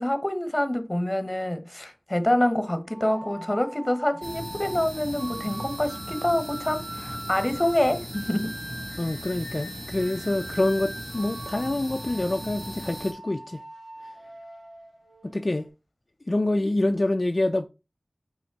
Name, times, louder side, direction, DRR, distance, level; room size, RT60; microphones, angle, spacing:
voice 1, 0.0-8.6, left 1 dB, 20° left, 1.1 m, -26 dB
sound 1, 2.9-15.7, equal, 70° right, 2.3 m, -42 dB
sound 2, 4.2-13.1, equal, 5° right, 2.3 m, -38 dB
voice 2, 9.0-13.6 15.2-15.7 16.3-17.7, left 2 dB, 45° left, 0.5 m, -26 dB
5.1 x 4.4 x 4.7 m
wide cardioid pair, 50°, 0 cm